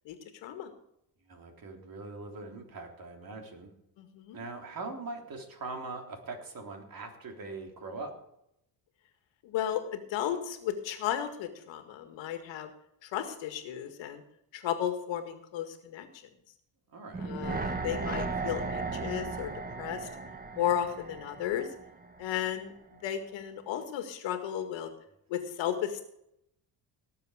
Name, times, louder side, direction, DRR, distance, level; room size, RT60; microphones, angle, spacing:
voice 1, 1.3-3.7 4.3-8.2 16.9-17.3, right 3 dB, 50° right, 3 dB, 3.4 m, -41 dB
voice 2, 4.0-4.4 9.4-12.7 13.0-14.2 14.5-16.2 17.2-19.5 19.8-20.1 20.5-21.7 22.2-22.7 23.0-24.9 25.3-26.1, left 10 dB, 90° left, 7 dB, 2.0 m, -34 dB
sound 1, 17.1-22.3 22.6-22.7, right 3 dB, 20° right, 1.4 m, -36 dB
18.5 x 7.5 x 5.0 m, 0.78 s
cardioid pair, 95°, 43 cm